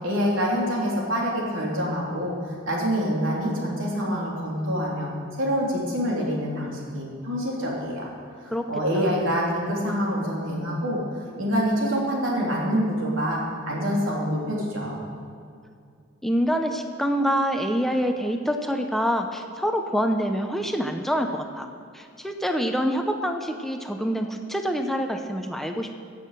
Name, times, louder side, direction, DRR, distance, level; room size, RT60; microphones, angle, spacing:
voice 1, 0.0-5.1 5.4-8.1 8.7-11.0 11.4-13.4 13.7-15.0, equal, 85° right, -3 dB, 3.3 m, -26 dB
voice 2, 16.2-21.7 21.9-26.0, equal, ahead, 4 dB, 0.6 m, -26 dB
15.5 x 7.5 x 6.7 m, 2.3 s
head